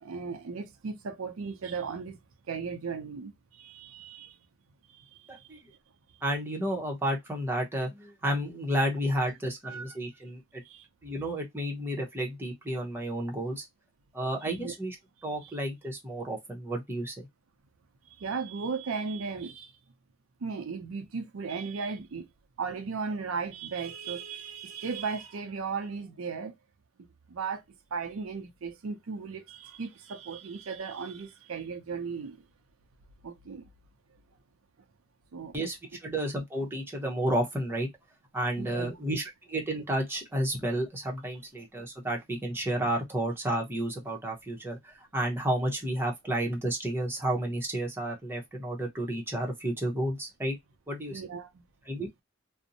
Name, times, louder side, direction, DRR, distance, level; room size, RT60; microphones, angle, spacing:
voice 1, 0.0-2.2 2.5-4.4 4.9-5.5 9.6-10.0 10.6-10.9 14.4-14.7 15.4-15.6 18.1-19.7 20.4-22.3 22.6-26.5 27.3-27.6 27.9-32.4 33.2-33.7 35.3-35.5 38.6-39.0 51.1-51.6, right 5 dB, 80° right, 0.5 m, -36 dB
voice 2, 5.3-5.6 6.2-10.6 11.0-13.7 14.1-15.0 15.2-17.3 35.5-35.8 36.0-37.9 38.3-50.6 50.9-51.2 51.9-52.1, right 1 dB, 10° right, 0.8 m, -31 dB
2.5 x 2.0 x 2.6 m
head